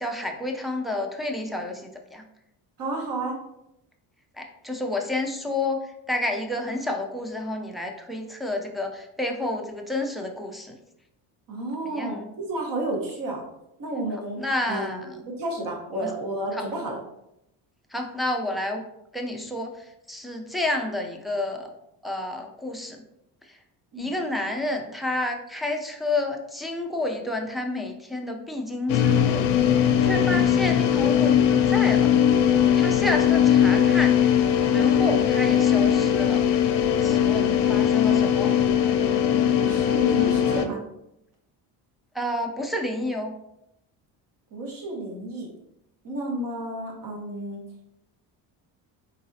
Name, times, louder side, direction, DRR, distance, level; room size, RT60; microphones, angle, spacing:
voice 1, 0.0-2.2 4.4-5.8 6.1-10.7 11.9-12.2 14.4-15.0 16.0-16.1 16.5-16.6 17.9-18.8 19.1-19.7 20.1-21.7 22.0-23.0 24.0-29.5 30.0-32.1 32.8-34.1 34.7-36.4 37.0-38.5 42.1-43.3, left 1 dB, ahead, 1 dB, 0.5 m, -30 dB
voice 2, 2.8-3.4 11.5-13.4 13.8-14.4 14.7-15.1 15.4-17.0 23.9-24.2 39.7-40.8 44.5-45.5 46.0-47.6, right 1 dB, 50° right, 0 dB, 1.3 m, -31 dB
sound 1, 28.9-40.7, left 9 dB, 80° left, 0.6 m, -20 dB
3.9 x 3.9 x 2.7 m, 0.84 s
cardioid pair, 105°, 41 cm